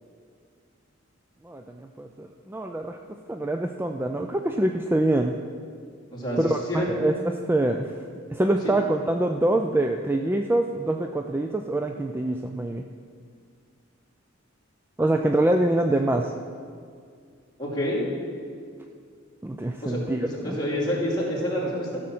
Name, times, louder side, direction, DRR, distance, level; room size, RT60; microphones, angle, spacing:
voice 1, 1.4-3.0 3.3-5.4 6.4-7.9 8.3-12.9 15.0-16.3 19.4-20.6, right 1 dB, 10° right, 4 dB, 0.3 m, -25 dB
voice 2, 17.6-18.0 19.8-22.0, equal, 20° left, -7 dB, 2.9 m, -28 dB
13.5 x 6.4 x 6.0 m, 2.2 s
head